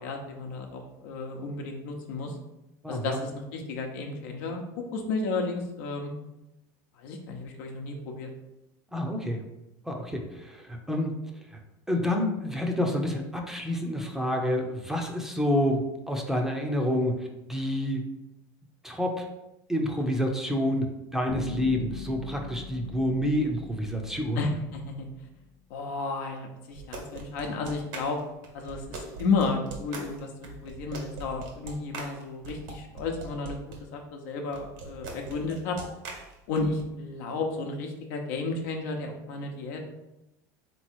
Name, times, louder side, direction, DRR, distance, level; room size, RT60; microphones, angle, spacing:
voice 1, 0.0-2.3 2.9-4.6 4.9-6.1 7.0-8.3 24.3-25.1 25.7-28.2 28.5-33.6 33.9-35.8 36.5-39.8, left 3 dB, 75° left, 2 dB, 0.8 m, -32 dB
voice 2, 2.8-3.2 8.9-9.4 9.8-11.1 11.5-11.6 11.9-18.1 18.8-19.2 19.7-24.4, left 1 dB, 5° right, 2 dB, 0.6 m, -28 dB
Bass guitar, 21.3-25.3, left 5 dB, 50° left, 0.8 m, -41 dB
sound 1, 26.7-33.8 34.5-36.8, right 3 dB, 75° right, 1.4 m, -41 dB
3.6 x 3.1 x 4.4 m, 0.92 s
supercardioid pair, 115°, 10 cm